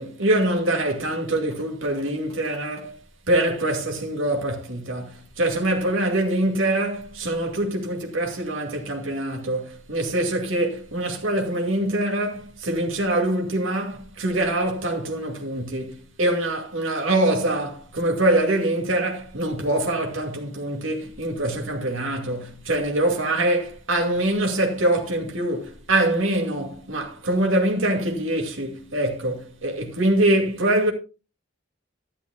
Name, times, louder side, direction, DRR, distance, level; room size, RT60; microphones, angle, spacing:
voice 1, 0.0-3.0 3.3-30.9, right 1 dB, 90° right, 2.3 m, -24 dB
12.5 x 11.5 x 2.3 m
head